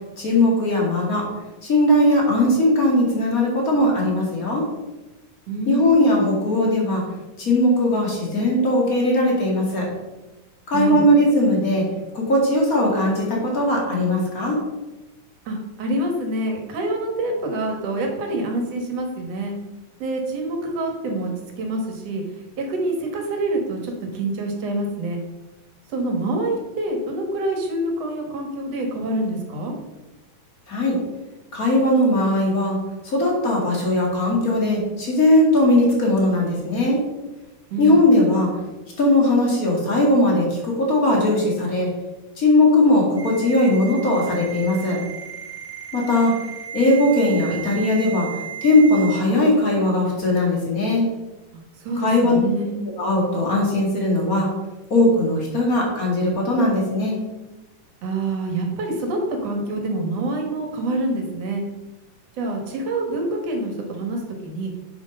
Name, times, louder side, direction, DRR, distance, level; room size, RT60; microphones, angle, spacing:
voice 1, 0.2-1.3 1.6-4.7 5.7-7.0 7.4-9.9 10.7-11.8 12.1-14.6 30.7-31.0 31.5-32.8 33.0-37.0 37.8-38.5 39.0-41.9 42.4-45.0 45.9-46.4 46.7-48.3 48.6-51.1 52.0-52.4 53.0-54.5 54.9-57.1, left 1 dB, 30° left, -2 dB, 2.1 m, -19 dB
voice 2, 5.5-6.2 10.7-11.0 15.5-19.5 20.0-22.2 22.6-25.2 25.9-29.7 37.7-38.0 51.5-52.8 58.0-61.7 62.4-64.7, right 2 dB, 55° right, 2 dB, 2.2 m, -26 dB
Ringtone, 43.2-49.2, right 9 dB, 10° right, 0.6 m, -35 dB
8.0 x 6.3 x 5.3 m, 1.1 s
omnidirectional pair, 3.8 m